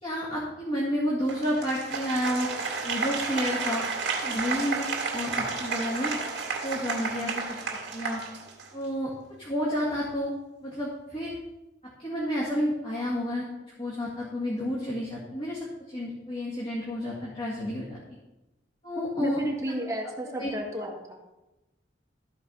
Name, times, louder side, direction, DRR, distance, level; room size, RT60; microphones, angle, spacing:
voice 1, 0.0-3.8 4.2-4.9 5.1-6.1 6.6-8.2 8.7-9.1 9.4-10.3 10.6-11.4 12.0-13.4 13.8-15.7 15.9-18.0 18.8-19.4 20.4-20.5, equal, 30° left, -6 dB, 2.0 m, -30 dB
Applause, 1.3-8.9, right 4 dB, 70° right, 2.2 m, -32 dB
voice 2, 19.0-20.9, equal, 15° right, -1 dB, 1.8 m, -32 dB
14.0 x 4.9 x 5.4 m, 1.0 s
head